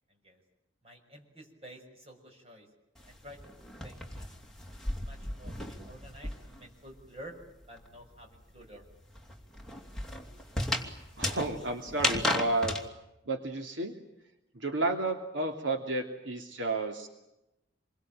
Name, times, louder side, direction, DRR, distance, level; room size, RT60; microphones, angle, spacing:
voice 1, 0.8-2.7 3.1-3.4 3.8-4.6 4.9-7.3 7.7-8.8, right 1 dB, 30° right, 2 dB, 6.5 m, -51 dB
sound 1, 3.0-6.7 7.0-12.8, left 1 dB, 5° left, 2.9 m, -35 dB
voice 2, 11.2-12.7 13.3-13.9 14.5-17.1, right 2 dB, 80° right, 4 dB, 3.0 m, -31 dB
27.5 x 23.0 x 9.1 m, 0.92 s
head